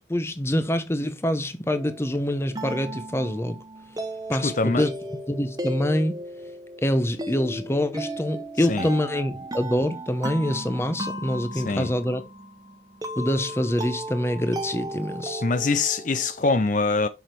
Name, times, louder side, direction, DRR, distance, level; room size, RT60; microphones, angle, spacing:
voice 1, 0.1-3.6 4.3-4.9 5.3-6.2 6.8-12.2 13.2-15.4, left 1 dB, 15° left, 0.8 m, -25 dB
sound 1, 1.7-16.5, right 1 dB, 20° right, 1.1 m, -36 dB
voice 2, 4.4-4.9 8.7-8.9 11.5-11.9 15.4-17.1, left 3 dB, 45° left, 0.5 m, -24 dB
7.1 x 6.1 x 3.3 m
head